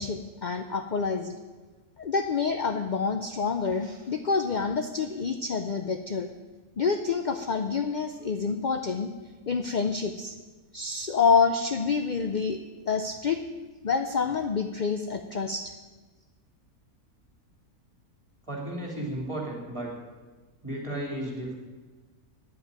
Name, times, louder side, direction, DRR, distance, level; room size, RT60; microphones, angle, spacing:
voice 1, 0.0-1.4 2.0-6.3 6.8-9.1 9.5-10.3 10.7-12.6 12.9-13.4 13.8-15.7, left 5 dB, 55° left, 7 dB, 0.5 m, -27 dB
voice 2, 18.5-19.9 20.6-21.6, right 1 dB, 20° right, -2 dB, 3.1 m, -34 dB
10.0 x 8.1 x 8.9 m, 1.3 s
omnidirectional pair, 1.6 m